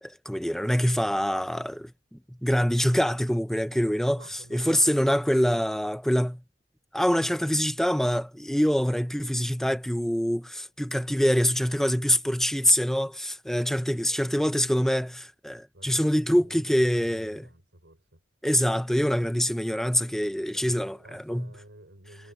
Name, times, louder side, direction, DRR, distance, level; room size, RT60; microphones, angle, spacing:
voice 1, 0.0-6.4 6.9-17.5 18.4-21.5, equal, ahead, 1.0 m, -25 dB
voice 2, 4.2-4.9 13.7-14.2 15.7-18.2 20.5-22.3, right 1 dB, 90° right, 6.0 m, -51 dB
head